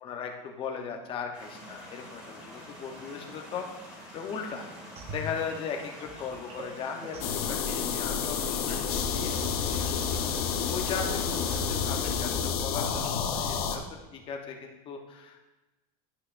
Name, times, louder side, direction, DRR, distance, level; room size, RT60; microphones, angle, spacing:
voice 1, 0.0-3.6 4.0-4.7 5.1-7.2 7.5-9.9 10.6-13.8 14.1-15.5, left 6 dB, 30° left, 3 dB, 0.8 m, -38 dB
sound 1, 1.3-12.2, equal, 5° right, 2.1 m, -46 dB
sound 2, 5.0-13.6, equal, 35° right, 0.8 m, -44 dB
sound 3, 7.2-13.8, left 7 dB, 75° left, 1.0 m, -29 dB
11.0 x 6.3 x 2.5 m, 1.1 s
cardioid pair, 165°, 19 cm